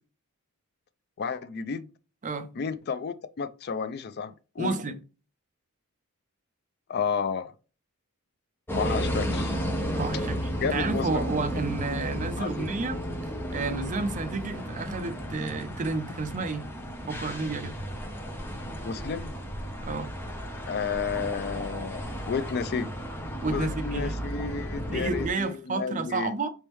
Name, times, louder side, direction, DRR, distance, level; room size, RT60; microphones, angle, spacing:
voice 1, 1.2-1.9 2.5-4.8 6.9-7.5 8.7-9.6 10.6-11.3 12.4-12.7 18.8-19.3 20.7-22.9 23.5-26.3, left 5 dB, 45° left, 0.4 m, -32 dB
voice 2, 4.6-5.0 10.0-13.0 13.5-16.7 17.1-17.8 19.8-20.1 23.4-24.1 24.9-26.5, right 3 dB, 35° right, 0.5 m, -31 dB
sound 1, 8.7-25.3, equal, 10° left, 0.6 m, -33 dB
4.2 x 3.5 x 3.0 m
head